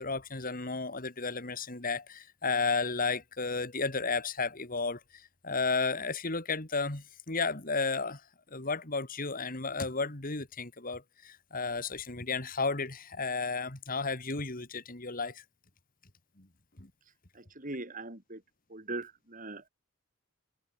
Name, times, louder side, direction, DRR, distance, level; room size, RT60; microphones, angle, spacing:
voice 1, 0.0-8.2 8.5-15.4 16.4-16.5 16.8-16.9, left 4 dB, 40° left, 2.5 m, -33 dB
voice 2, 17.3-18.4 18.7-19.7, right 2 dB, 40° right, 3.4 m, -40 dB
head